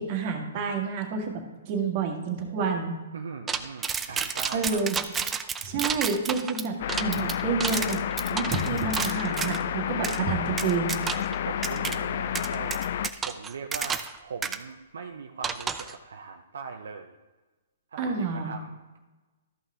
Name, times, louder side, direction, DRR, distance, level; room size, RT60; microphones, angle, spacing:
voice 1, 0.0-1.3 1.7-2.9 4.5-5.0 5.6-8.0 8.3-10.9 18.0-18.5, right 5 dB, 40° right, 2 dB, 1.7 m, -29 dB
voice 2, 3.1-4.8 9.7-10.2 11.1-12.8 13.3-17.2 17.9-19.0, right 5 dB, 75° right, 4 dB, 0.6 m, -40 dB
sound 1, 3.5-9.6 10.0-10.2 10.6-11.4 11.6-12.0 12.4-14.2 14.4-14.6 15.4-15.9, right 6 dB, 15° right, 0.5 m, -31 dB
sound 2, 6.8-13.1, left 10 dB, 55° left, 0.3 m, -30 dB
13.5 x 5.6 x 3.7 m, 1.2 s
hypercardioid pair, 130°, 0 cm